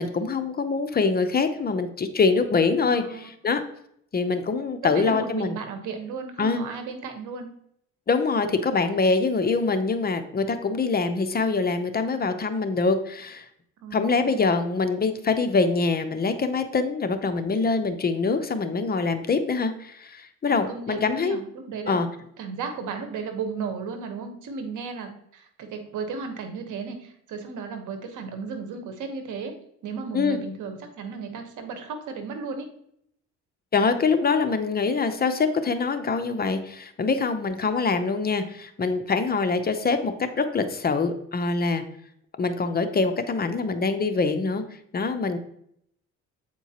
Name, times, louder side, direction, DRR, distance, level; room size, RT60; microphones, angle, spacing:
voice 1, 0.0-3.6 4.1-5.6 6.4-6.6 8.1-13.5 13.9-21.4 21.9-22.1 30.1-30.4 33.7-41.8 42.4-44.6 44.9-45.4, left 4 dB, 30° left, 8 dB, 0.6 m, -24 dB
voice 2, 2.9-3.3 4.8-7.5 13.8-14.5 20.5-22.0 22.4-29.5 29.8-32.7, right 5 dB, 80° right, 6 dB, 1.1 m, -35 dB
8.0 x 4.5 x 2.8 m, 0.70 s
cardioid pair, 90°, 30 cm